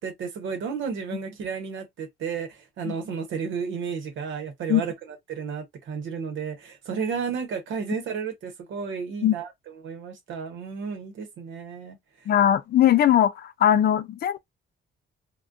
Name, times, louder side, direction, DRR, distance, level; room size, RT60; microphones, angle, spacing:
voice 1, 0.0-12.0, right 6 dB, 75° right, 0.9 m, -32 dB
voice 2, 12.3-14.4, left 10 dB, 50° left, 0.4 m, -20 dB
2.2 x 2.2 x 2.5 m
cardioid pair, 90°, 20 cm